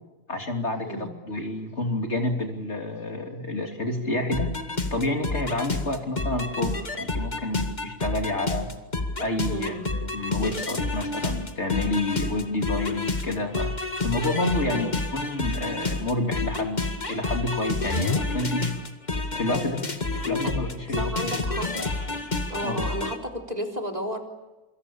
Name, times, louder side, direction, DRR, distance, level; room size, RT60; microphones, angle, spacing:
voice 1, 0.3-4.5 4.9-8.7 9.2-13.7 14.0-18.7 19.4-19.9 20.3-21.1 22.6-22.8, left 2 dB, 45° left, 4 dB, 3.3 m, -29 dB
voice 2, 0.8-1.2 9.5-9.9 14.7-14.9 19.5-19.8 20.4-20.5 20.9-21.7 22.5-24.2, equal, 25° right, 4 dB, 3.8 m, -33 dB
sound 1, 4.3-23.2, left 3 dB, 30° left, 2.0 m, -29 dB
27.5 x 25.5 x 7.1 m, 1.1 s
omnidirectional pair, 1.6 m